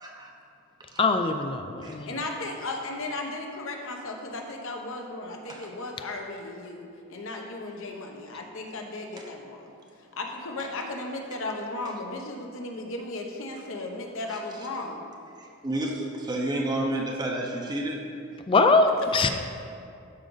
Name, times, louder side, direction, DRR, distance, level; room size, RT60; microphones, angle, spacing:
voice 1, 1.0-2.1 18.5-19.3, left 3 dB, 25° left, 7 dB, 0.4 m, -22 dB
voice 2, 2.0-9.7 10.2-15.0 19.2-19.3, left 2 dB, 65° left, 2 dB, 1.0 m, -35 dB
voice 3, 15.4-18.0, right 1 dB, 20° right, 0 dB, 0.7 m, -30 dB
12.5 x 5.1 x 4.0 m, 2.4 s
head